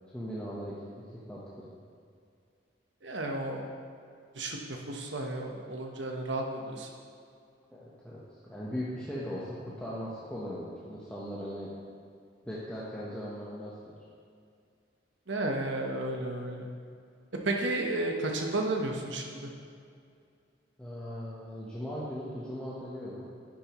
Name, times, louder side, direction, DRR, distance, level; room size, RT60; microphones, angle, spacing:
voice 1, 0.1-0.8 1.1-1.6 7.7-8.2 8.5-11.7 12.4-13.9 20.8-23.3, equal, 5° left, -8 dB, 1.1 m, -38 dB
voice 2, 3.0-3.7 4.3-6.9 15.3-16.7 17.4-19.5, right 2 dB, 90° right, 2 dB, 1.2 m, -32 dB
10.5 x 10.0 x 3.1 m, 2.3 s
head